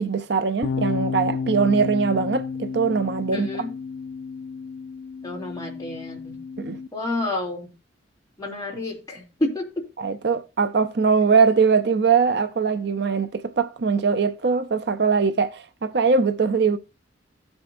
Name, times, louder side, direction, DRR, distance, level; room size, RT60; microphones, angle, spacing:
voice 1, 0.0-3.6 6.6-6.8 10.0-16.8, right 5 dB, 65° right, 0.6 m, -21 dB
sound 1, 0.6-6.9, left 5 dB, 85° left, 0.4 m, -31 dB
voice 2, 3.3-3.7 5.2-6.4 6.9-7.7 8.4-9.8, left 2 dB, 20° left, 2.8 m, -29 dB
16.5 x 6.1 x 2.6 m
head